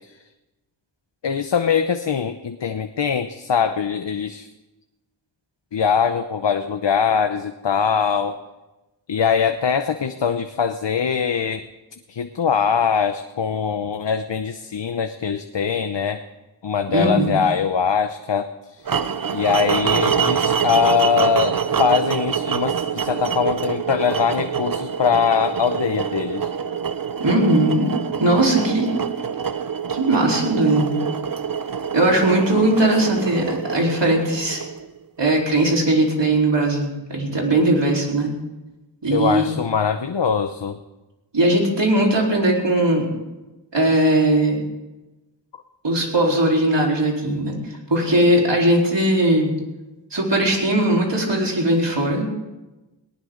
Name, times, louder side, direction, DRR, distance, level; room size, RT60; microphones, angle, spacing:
voice 1, 1.2-4.5 5.7-8.4 9.1-11.6 12.1-16.2 16.6-18.9 19.3-26.5 39.1-40.8, left 6 dB, 70° left, 8 dB, 0.8 m, -22 dB
voice 2, 16.9-17.4 27.2-27.9 28.2-28.9 29.9-31.0 31.9-34.6 35.2-38.3 39.0-39.5 41.3-43.1 43.7-44.6 45.8-47.5 47.9-49.5 50.1-52.3, right 1 dB, 70° right, -2 dB, 4.2 m, -19 dB
sound 1, 18.9-35.0, right 7 dB, 50° right, 0.7 m, -25 dB
19.0 x 18.5 x 3.9 m, 1.1 s
wide cardioid pair, 70°, 45 cm